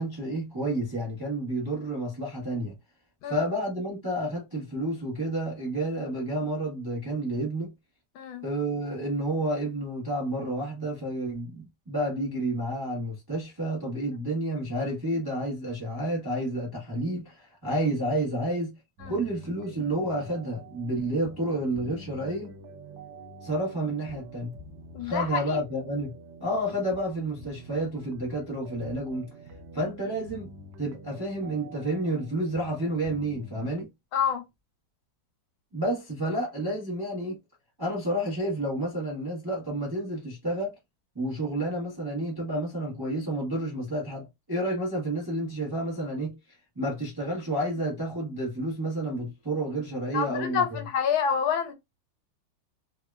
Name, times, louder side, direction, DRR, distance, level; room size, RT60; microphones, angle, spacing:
voice 1, 0.0-2.7 3.3-7.7 8.4-18.7 19.0-22.5 23.4-24.5 25.0-26.1 26.4-29.3 29.7-30.5 30.8-33.9 35.7-37.4 37.8-40.7 41.1-50.8, right 1 dB, 25° right, 0.4 m, -30 dB
sound 1, 19.0-33.8, right 1 dB, 70° right, 1.2 m, -47 dB
voice 2, 24.9-25.6 34.1-34.4 50.1-51.7, left 7 dB, 80° left, 1.4 m, -28 dB
3.5 x 2.1 x 2.2 m
omnidirectional pair, 2.2 m